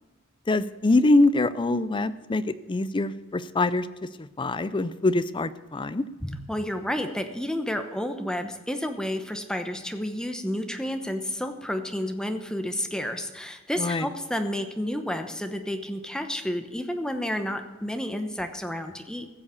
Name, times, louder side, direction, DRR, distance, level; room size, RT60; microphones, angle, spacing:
voice 1, 0.5-3.9 4.4-6.0 13.8-14.1, left 2 dB, 25° left, 14 dB, 0.5 m, -24 dB
voice 2, 6.2-19.3, left 1 dB, 5° left, 6 dB, 0.9 m, -31 dB
15.5 x 7.3 x 6.9 m, 1.2 s
head